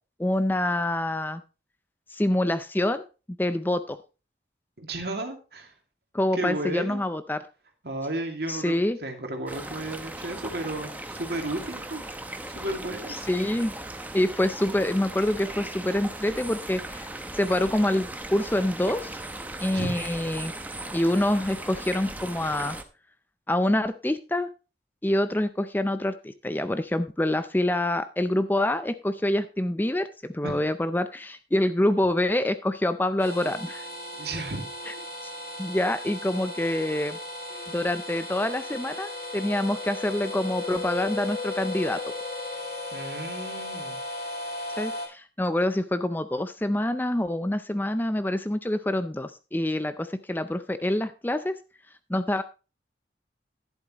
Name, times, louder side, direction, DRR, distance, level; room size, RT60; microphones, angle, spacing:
voice 1, 0.2-1.4 2.1-3.1 3.4-4.0 6.1-7.4 8.5-9.0 13.3-13.7 14.1-17.1 17.3-19.2 19.6-20.5 20.9-22.8 23.5-24.5 25.0-33.9 34.9-35.0 35.2-35.3 35.6-37.2 37.7-42.0 44.8-51.6 52.1-52.4, left 1 dB, 10° left, 11 dB, 0.5 m, -26 dB
voice 2, 4.8-5.7 6.3-7.0 7.8-12.0 12.5-13.2 19.7-19.9 30.4-30.6 34.2-34.7 42.9-44.0, right 1 dB, 65° right, 4 dB, 2.4 m, -33 dB
sound 1, 9.5-22.8, right 2 dB, 10° right, 0.8 m, -38 dB
sound 2, 33.2-45.1, left 2 dB, 60° left, 6.0 m, -36 dB
12.0 x 11.0 x 3.0 m, 0.32 s
head